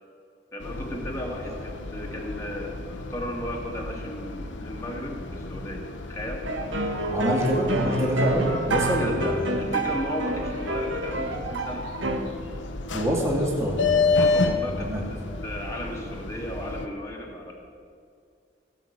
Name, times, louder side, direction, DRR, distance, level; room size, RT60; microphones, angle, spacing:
voice 1, 0.5-6.5 8.8-11.9 14.1-17.5, left 1 dB, 15° left, -1 dB, 1.9 m, -35 dB
sound 1, 0.6-16.9, left 3 dB, 70° left, 0.9 m, -31 dB
sound 2, 6.4-12.2, right 2 dB, 70° right, 1.4 m, -28 dB
voice 2, 7.1-9.3 12.9-14.2 14.6-15.0, equal, 15° right, -3 dB, 2.2 m, -26 dB
17.0 x 5.8 x 8.1 m, 2.3 s
head